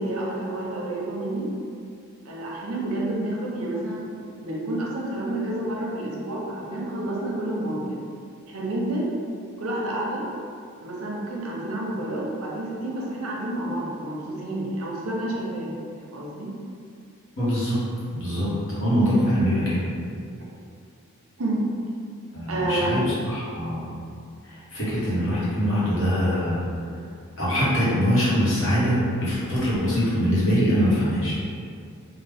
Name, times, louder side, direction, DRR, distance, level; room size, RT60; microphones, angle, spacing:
voice 1, 0.0-1.5 2.2-4.1 4.4-8.0 8.5-9.1 9.6-10.2 10.8-16.5 18.4-18.6 21.4-21.7 22.5-22.9, right 1 dB, 75° right, -3 dB, 0.7 m, -29 dB
voice 2, 17.4-17.8 18.1-19.8 22.3-23.9 24.4-26.6 27.4-31.3, equal, 60° left, -9 dB, 1.2 m, -23 dB
3.6 x 2.4 x 3.4 m, 2.3 s
head